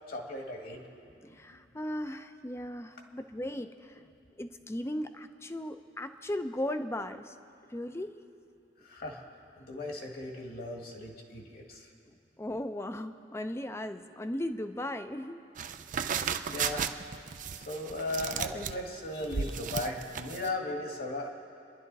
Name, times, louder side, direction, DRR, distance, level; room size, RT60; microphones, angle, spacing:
voice 1, 0.1-0.8 8.8-9.2 9.6-11.9 16.1-16.2 16.5-16.9 17.6-21.3, left 2 dB, 50° left, 1 dB, 2.0 m, -37 dB
voice 2, 1.2-4.1 4.4-7.3 7.7-8.1 12.1-15.4 16.2-16.4, left 1 dB, 15° left, 9 dB, 0.6 m, -37 dB
sound 1, 15.6-20.5, right 7 dB, 45° right, 0.5 m, -34 dB
29.5 x 11.0 x 4.1 m, 2.5 s
head